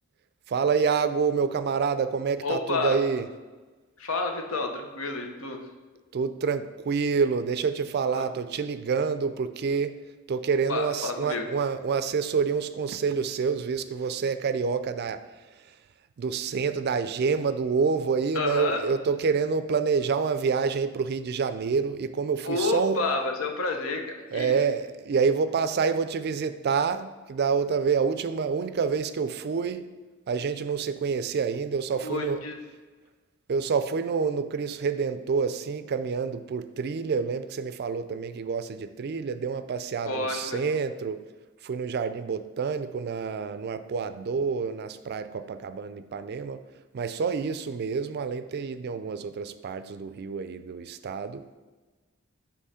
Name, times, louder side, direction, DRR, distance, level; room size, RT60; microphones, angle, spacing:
voice 1, 0.5-3.3 6.1-10.0 10.3-15.2 15.6-15.7 16.2-23.0 24.3-29.8 30.3-32.4 33.5-41.2 41.6-46.6 46.9-51.5, right 5 dB, 50° right, 12 dB, 0.4 m, -27 dB
voice 2, 2.4-3.1 4.0-5.7 10.7-11.5 18.3-18.8 22.4-24.6 32.0-32.6 40.0-40.6, left 3 dB, 80° left, 4 dB, 0.9 m, -29 dB
8.2 x 3.1 x 5.6 m, 1.3 s
head